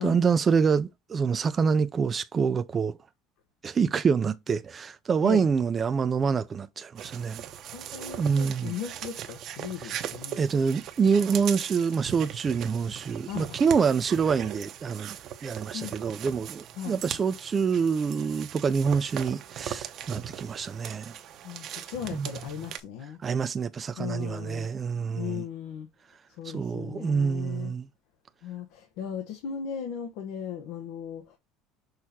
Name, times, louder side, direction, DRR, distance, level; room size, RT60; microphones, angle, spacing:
voice 1, 0.0-3.0 3.6-7.4 8.2-8.7 9.8-10.0 10.4-15.2 15.4-21.1 22.1-22.3 23.2-25.4 26.5-27.9, right 6 dB, 25° right, 0.5 m, -26 dB
sound 1, 7.0-22.8, right 10 dB, 45° right, 0.9 m, -39 dB
voice 2, 7.7-10.4 13.3-13.6 15.7-15.9 16.8-17.0 21.4-23.2 24.0-24.7 25.2-25.9 26.4-27.7 28.4-31.4, left 8 dB, 70° left, 1.2 m, -37 dB
6.4 x 3.5 x 4.3 m
cardioid pair, 145°, 0 cm